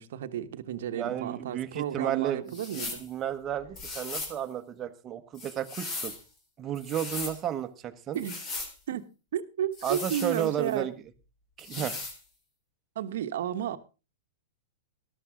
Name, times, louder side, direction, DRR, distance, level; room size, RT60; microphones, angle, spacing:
voice 1, 0.0-3.0 8.1-8.4 8.9-10.9 11.8-11.9 12.9-13.8, right 10 dB, 65° right, 1.1 m, -33 dB
voice 2, 0.9-2.5 2.8-6.1 6.6-8.2 9.8-10.9 11.6-11.9, right 10 dB, 30° right, 1.2 m, -33 dB
sound 1, 2.5-3.1 3.7-4.4 5.3-6.2 6.7-7.4 8.1-8.7 9.7-10.8 11.6-12.2, left 3 dB, 35° left, 4.0 m, -38 dB
13.0 x 12.5 x 3.8 m
hypercardioid pair, 115°, 0 cm